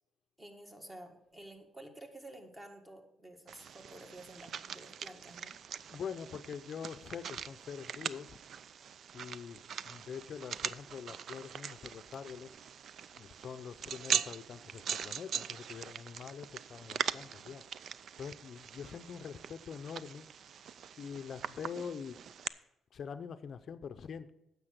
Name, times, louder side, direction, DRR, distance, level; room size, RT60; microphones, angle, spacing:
voice 1, 0.4-5.6, right 1 dB, 15° right, 4 dB, 1.8 m, -51 dB
sound 1, 3.5-22.5, right 8 dB, 60° right, 0.4 m, -41 dB
voice 2, 5.9-8.4 9.1-12.5 13.1-17.6 18.2-20.3 21.0-22.2 22.9-24.3, left 7 dB, 55° left, 10 dB, 0.5 m, -44 dB
9.8 x 7.1 x 6.5 m, 0.91 s
cardioid pair, 90°, 0 cm